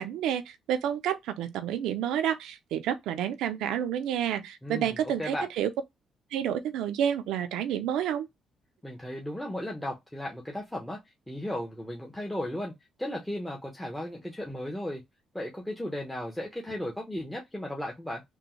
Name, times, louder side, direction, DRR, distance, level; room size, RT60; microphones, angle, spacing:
voice 1, 0.0-5.7 6.3-8.3, right 9 dB, 90° right, 0.5 m, -29 dB
voice 2, 4.6-5.5 8.8-11.0 11.3-12.7 13.0-15.0 15.3-18.2, left 1 dB, 5° left, 0.8 m, -35 dB
3.4 x 2.2 x 2.9 m
cardioid pair, 90°, 0 cm